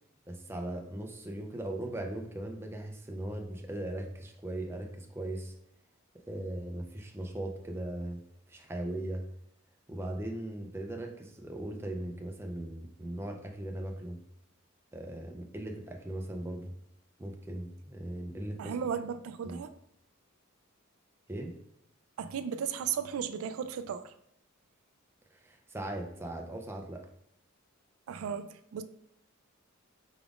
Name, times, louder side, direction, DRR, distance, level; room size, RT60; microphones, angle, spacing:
voice 1, 0.3-5.5 6.3-8.2 8.5-9.2 9.9-14.2 14.9-16.7 17.2-18.7 19.4-19.6 21.3-21.5 25.4-27.0, right 1 dB, 10° right, 0.4 m, -38 dB
voice 2, 18.6-19.7 22.2-24.0 28.1-28.8, right 7 dB, 75° right, 0.3 m, -35 dB
4.9 x 3.4 x 2.4 m
head